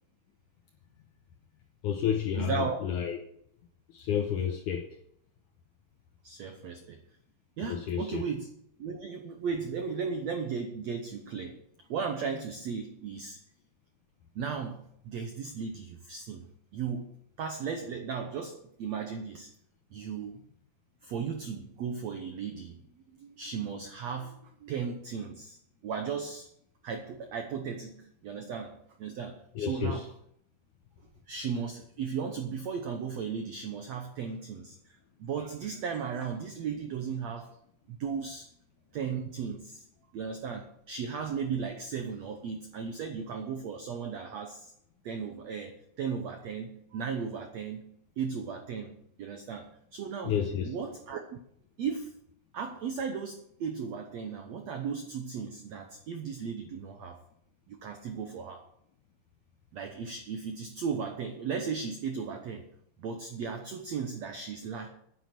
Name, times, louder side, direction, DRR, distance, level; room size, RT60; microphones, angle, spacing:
voice 1, 1.8-3.2 3.9-5.0 7.6-8.2 29.6-30.1 50.2-50.7, left 8 dB, 80° left, 1.8 m, -30 dB
voice 2, 2.3-2.8 6.2-7.0 7.6-8.5 8.8-11.6 11.9-13.4 14.3-17.1 17.4-19.5 19.9-20.4 21.0-22.8 23.2-26.5 26.8-30.1 31.3-37.5 37.9-38.5 38.9-39.8 40.1-44.7 45.0-47.8 48.2-50.4 50.6-51.4 51.8-52.1 52.5-57.2 57.7-58.7 59.7-62.7 63.0-64.9, right 6 dB, 85° right, 1.5 m, -36 dB
10.0 x 9.5 x 6.0 m
omnidirectional pair, 4.5 m